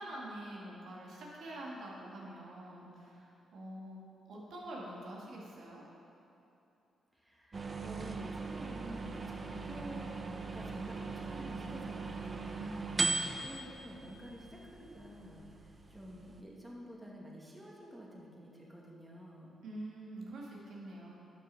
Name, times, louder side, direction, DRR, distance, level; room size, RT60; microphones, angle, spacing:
voice 1, 0.0-4.0 4.3-5.8 12.6-13.5 19.6-21.1, right 1 dB, 70° right, -3 dB, 1.9 m, -46 dB
voice 2, 7.1-10.1 10.5-12.7 13.4-15.5 15.9-19.5, equal, 10° right, -3 dB, 2.1 m, -49 dB
sound 1, 7.5-16.4, right 3 dB, 40° right, 0.7 m, -39 dB
11.0 x 6.5 x 4.1 m, 2.9 s
supercardioid pair, 55°, 0 cm